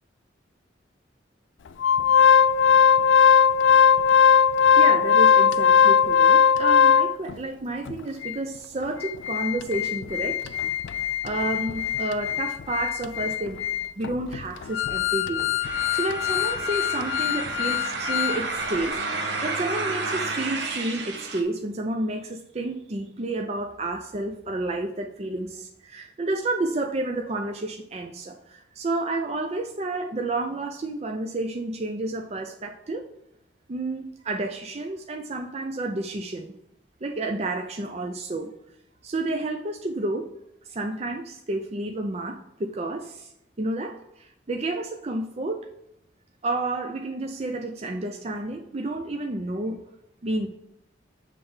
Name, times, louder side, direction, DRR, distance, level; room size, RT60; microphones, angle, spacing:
Organ, 1.8-7.3 7.9-8.0 8.2-8.4 8.8-18.4 18.7-18.9, left 7 dB, 80° left, 0.4 m, -20 dB
voice 1, 4.8-10.4 11.2-13.6 14.0-33.0 33.7-36.5 37.0-38.5 39.0-40.3 40.7-43.3 43.6-45.7 46.4-49.8 50.2-50.5, right 2 dB, 35° right, 3 dB, 0.5 m, -30 dB
sound 1, 15.6-21.4, right 3 dB, 65° right, 1.1 m, -31 dB
7.5 x 3.3 x 5.5 m, 0.81 s
head